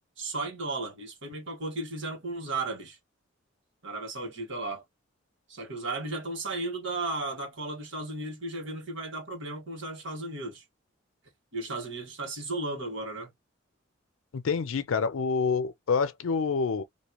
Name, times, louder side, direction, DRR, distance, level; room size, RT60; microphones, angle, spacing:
voice 1, 0.2-3.0 3.8-4.8 5.5-10.6 11.5-13.3, right 2 dB, 65° right, 1.6 m, -35 dB
voice 2, 14.3-16.8, left 5 dB, 80° left, 0.5 m, -27 dB
2.9 x 2.7 x 2.9 m
head